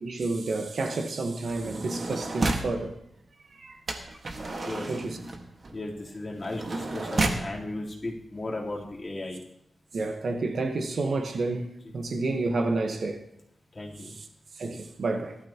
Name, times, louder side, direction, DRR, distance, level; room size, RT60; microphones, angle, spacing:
voice 1, 0.0-3.0 3.5-3.8 4.9-5.2 9.9-13.2 14.0-14.3 14.6-15.4, right 3 dB, 65° right, 1.3 m, -30 dB
sound 1, 1.5-2.8 3.9-7.5 8.3-8.4 8.7-9.0, right 2 dB, 45° right, 1.7 m, -32 dB
voice 2, 4.6-4.9 5.7-9.4 11.8-11.9 13.7-14.1, left 2 dB, 30° left, 3.6 m, -36 dB
18.5 x 13.0 x 3.0 m
wide cardioid pair, 95°, 0 cm